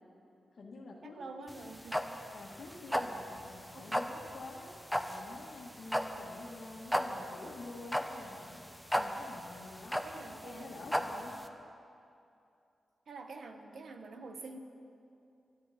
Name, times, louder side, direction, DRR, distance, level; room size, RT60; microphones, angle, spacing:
voice 1, 0.5-1.7 2.3-4.1 4.3-4.7 5.1-8.6 8.9-11.4, left 3 dB, 50° left, -6 dB, 1.5 m, -48 dB
voice 2, 1.0-2.0 3.7-3.9 10.0-10.8 13.1-14.6, right 3 dB, 60° right, 6 dB, 1.1 m, -47 dB
sound 1, 1.5-11.5, equal, ahead, 0.7 m, -35 dB
22.5 x 12.0 x 4.2 m, 2.6 s
wide cardioid pair, 150°, 0 cm